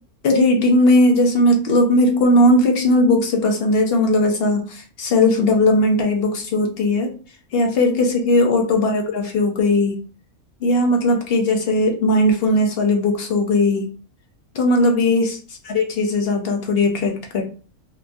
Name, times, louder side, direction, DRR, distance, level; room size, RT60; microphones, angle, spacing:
voice 1, 0.2-7.1 7.5-10.0 10.6-13.9 14.5-15.4 15.7-17.4, left 1 dB, 60° left, 3 dB, 0.6 m, -18 dB
3.0 x 2.3 x 2.6 m, 0.37 s
omnidirectional pair, 1.5 m